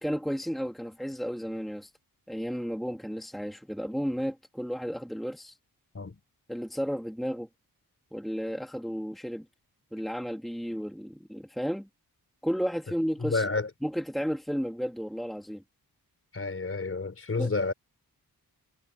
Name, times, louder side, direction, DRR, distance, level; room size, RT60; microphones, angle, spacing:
voice 1, 0.0-1.9 2.3-5.6 6.5-7.5 8.1-9.5 9.9-11.9 12.4-13.5 13.8-15.6 17.4-17.5, equal, ahead, 2.1 m, -33 dB
voice 2, 13.2-13.7 16.3-17.7, left 3 dB, 35° left, 4.7 m, -30 dB
wide cardioid pair, 165°, 37 cm